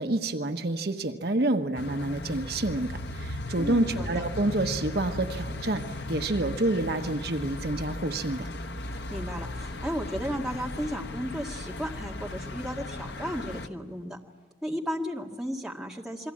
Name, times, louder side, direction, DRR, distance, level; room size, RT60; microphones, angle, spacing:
voice 1, 0.0-2.9 3.1-5.8 6.1-8.5, right 2 dB, 60° right, 6 dB, 1.1 m, -28 dB
sound 1, 1.8-13.7, left 2 dB, 70° left, 1.0 m, -37 dB
voice 2, 3.6-4.2 9.0-14.2 14.6-16.3, equal, 5° right, -1 dB, 2.0 m, -34 dB
29.0 x 22.5 x 8.6 m, 1.2 s
head